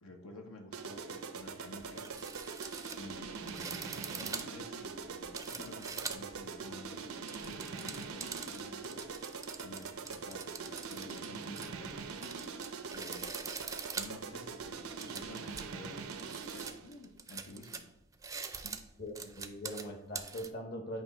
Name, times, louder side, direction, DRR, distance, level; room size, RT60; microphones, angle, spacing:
voice 1, 0.0-2.6 3.0-7.1 7.4-13.6 13.9-16.0 16.5-17.9, left 1 dB, 90° left, 3 dB, 1.0 m, -52 dB
sound 1, 0.7-16.9, right 5 dB, 90° right, 0.7 m, -43 dB
sound 2, 1.4-1.5 1.8-6.4 7.0-20.5, right 5 dB, 15° right, 0.4 m, -44 dB
voice 2, 19.0-21.0, equal, 50° left, 4 dB, 1.0 m, -41 dB
8.7 x 3.0 x 5.4 m, 0.80 s
head